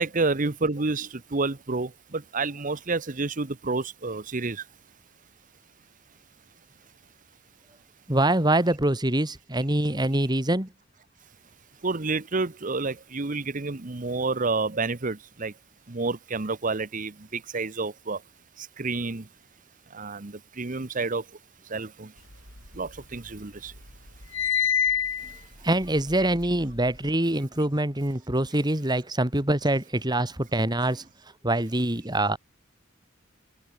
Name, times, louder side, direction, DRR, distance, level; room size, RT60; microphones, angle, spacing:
voice 1, 0.0-4.7 11.8-15.5 15.9-18.2 18.6-19.3 19.9-21.3 21.7-22.1 22.7-23.7, right 3 dB, 40° right, 1.0 m, -29 dB
voice 2, 8.1-10.7 25.6-31.0 31.4-32.4, right 1 dB, 20° right, 2.4 m, -24 dB
sound 1, 22.3-23.4 23.7-27.1, left 8 dB, 85° left, 4.3 m, -29 dB
head